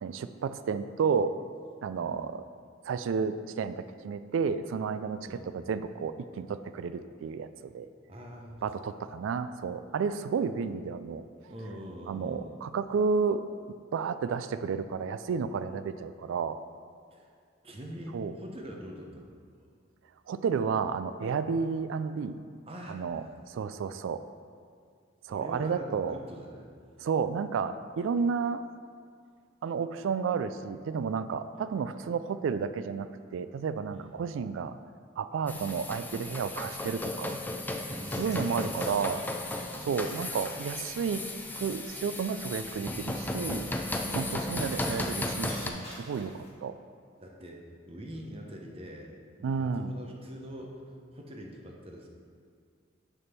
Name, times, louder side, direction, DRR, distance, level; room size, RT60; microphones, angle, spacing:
voice 1, 0.0-1.4 1.8-2.4 2.9-5.3 5.5-7.9 8.6-11.3 12.1-13.4 13.9-16.6 18.1-18.3 20.3-22.4 22.9-24.2 25.3-26.2 27.0-28.6 29.6-34.8 35.2-37.4 38.1-39.2 39.5-41.3 41.6-43.7 44.1-46.8 49.4-49.9, right 5 dB, 75° right, 12 dB, 0.3 m, -31 dB
voice 2, 8.1-8.5 11.5-12.6 17.1-17.3 17.6-19.3 22.7-23.0 25.3-26.7 31.5-31.7 33.9-34.2 37.9-39.2 47.2-52.1, equal, 30° right, 0 dB, 0.8 m, -44 dB
sound 1, 35.5-45.7, left 1 dB, 10° left, 0.3 m, -35 dB
sound 2, 38.0-46.5, left 1 dB, 30° left, 1.7 m, -50 dB
6.6 x 3.6 x 5.8 m, 2.2 s
head